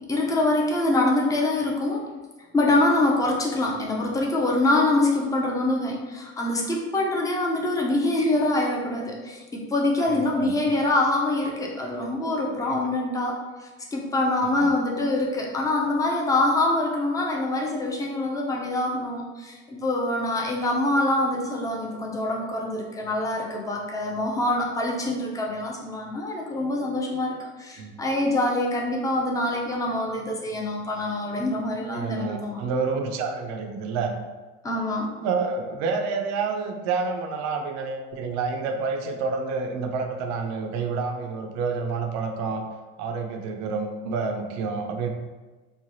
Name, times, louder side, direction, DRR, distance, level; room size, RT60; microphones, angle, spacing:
voice 1, 0.1-2.1 2.5-13.3 13.9-32.6 34.6-35.1, left 2 dB, 10° left, -1 dB, 0.5 m, -25 dB
voice 2, 10.0-10.8 12.7-12.8 14.4-14.7 27.8-27.9 31.9-34.1 35.2-42.6 43.0-45.1, right 4 dB, 45° right, 4 dB, 0.5 m, -29 dB
3.2 x 2.1 x 2.6 m, 1.3 s
hypercardioid pair, 70°, 38 cm